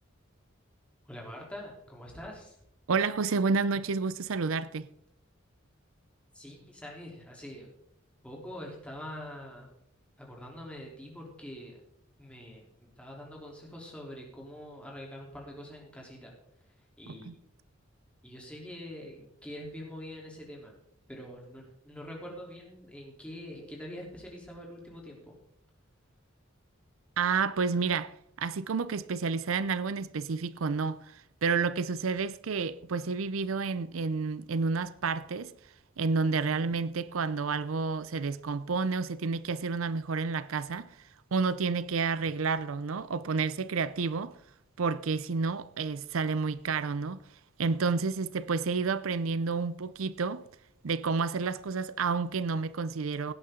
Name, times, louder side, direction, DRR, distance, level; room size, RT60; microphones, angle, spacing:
voice 1, 1.1-2.6 6.3-7.7 8.2-9.7 10.2-11.8 12.2-16.3 17.0-17.4 18.2-20.7 21.1-25.3, equal, 5° left, 3.5 m, -44 dB
voice 2, 2.9-4.9 17.1-17.3 27.2-28.1 28.4-35.5 36.0-40.9 41.3-44.4 44.8-47.2 47.6-50.4 50.8-53.3, right 4 dB, 90° right, 0.6 m, -30 dB
17.5 x 9.6 x 3.8 m
head